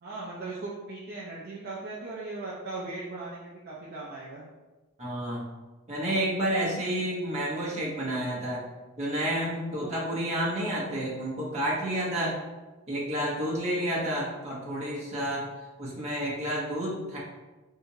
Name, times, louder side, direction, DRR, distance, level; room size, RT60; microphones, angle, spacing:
voice 1, 0.0-4.4 9.8-10.0 12.1-12.3, right 3 dB, 50° right, -6 dB, 0.5 m, -38 dB
voice 2, 5.0-5.4 5.9-8.6 9.0-12.3 12.9-15.5 15.8-17.2, right 1 dB, 35° right, -6 dB, 1.0 m, -30 dB
3.3 x 2.8 x 2.8 m, 1.2 s
head